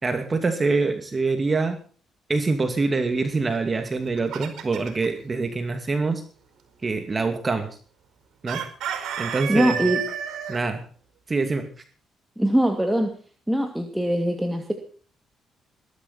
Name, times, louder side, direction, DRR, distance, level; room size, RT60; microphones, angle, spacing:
voice 1, 0.0-1.8 2.3-6.2 6.8-7.7 8.4-8.6 9.2-9.8 10.5-10.8 11.3-11.7, right 3 dB, 30° right, 6 dB, 2.6 m, -25 dB
Chicken rooster, 3.8-5.1 8.5-10.6, right 8 dB, 80° right, 5.1 m, -30 dB
voice 2, 9.5-10.0 12.4-13.1 13.5-14.7, right 1 dB, 5° right, 4 dB, 2.6 m, -22 dB
21.0 x 12.5 x 4.3 m, 0.41 s
cardioid pair, 90°, 0 cm